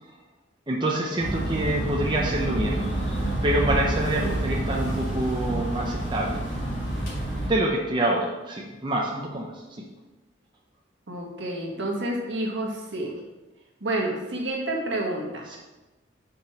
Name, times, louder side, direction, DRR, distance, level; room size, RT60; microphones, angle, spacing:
voice 1, 0.7-2.8 3.4-6.4 7.4-9.6 15.5-15.6, right 1 dB, 25° right, -1 dB, 0.7 m, -26 dB
sound 1, 1.2-7.5, right 1 dB, 40° left, 2.5 m, -28 dB
voice 2, 11.1-13.2 13.8-15.4, right 1 dB, 70° right, -1 dB, 1.6 m, -29 dB
5.4 x 5.1 x 5.9 m, 1.1 s
head